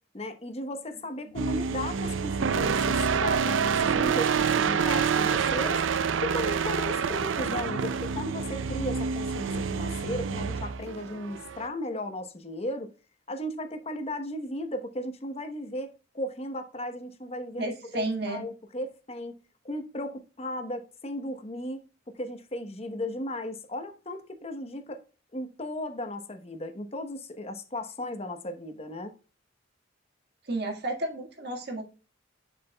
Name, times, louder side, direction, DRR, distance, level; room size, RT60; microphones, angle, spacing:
voice 1, 0.1-5.8 6.2-12.9 13.3-19.4 19.6-25.0 25.3-29.1, left 1 dB, 35° left, 1.0 m, -36 dB
sound 1, 1.4-11.7, right 6 dB, 90° right, 0.5 m, -27 dB
voice 2, 17.6-18.5 30.4-31.8, right 2 dB, 60° right, 1.7 m, -32 dB
7.6 x 6.7 x 2.3 m
head